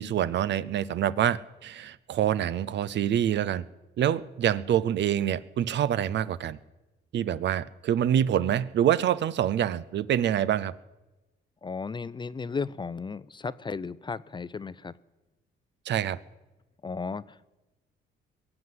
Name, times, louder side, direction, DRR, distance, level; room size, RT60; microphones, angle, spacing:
voice 1, 0.0-3.6 4.0-6.6 7.1-10.7 15.9-16.2, right 10 dB, 65° right, 17 dB, 0.6 m, -26 dB
voice 2, 11.6-14.9 16.8-17.5, left 4 dB, 25° left, 18 dB, 0.4 m, -35 dB
22.0 x 7.9 x 7.7 m, 1.1 s
cardioid pair, 90°, 20 cm